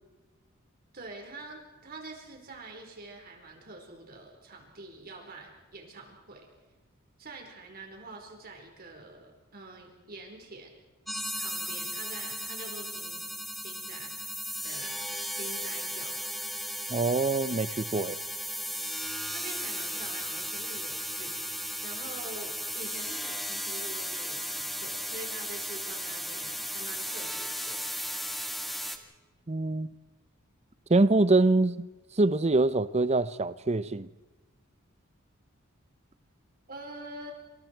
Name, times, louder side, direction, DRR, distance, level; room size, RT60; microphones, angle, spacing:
voice 1, 0.9-6.5 7.2-10.8 11.4-13.3 13.6-14.1 14.6-15.0 15.3-16.2 19.3-21.5 21.8-28.1 36.7-37.3, right 2 dB, 45° right, 4.6 m, -45 dB
sound 1, 11.1-29.0, equal, ahead, 1.8 m, -35 dB
voice 2, 16.9-18.2 29.5-29.9 30.9-31.9 32.2-34.1, right 2 dB, 30° right, 0.7 m, -24 dB
28.0 x 27.0 x 4.6 m
head